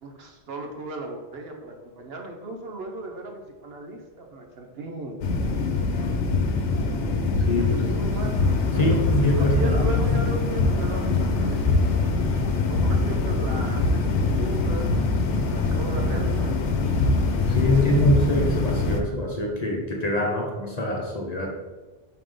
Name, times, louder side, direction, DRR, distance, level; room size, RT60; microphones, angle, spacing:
voice 1, 0.0-5.2 7.5-8.4 8.7-11.8 12.7-14.0 14.3-15.1 15.4-16.6 17.7-18.0, right 2 dB, 60° right, 3 dB, 1.1 m, -36 dB
sound 1, 5.2-19.0, left 3 dB, 80° left, 1.0 m, -23 dB
voice 2, 7.4-7.9 8.7-9.8 10.1-10.2 17.5-21.5, left 1 dB, 40° left, -1 dB, 1.0 m, -24 dB
5.8 x 5.0 x 3.8 m, 1.2 s
omnidirectional pair, 1.2 m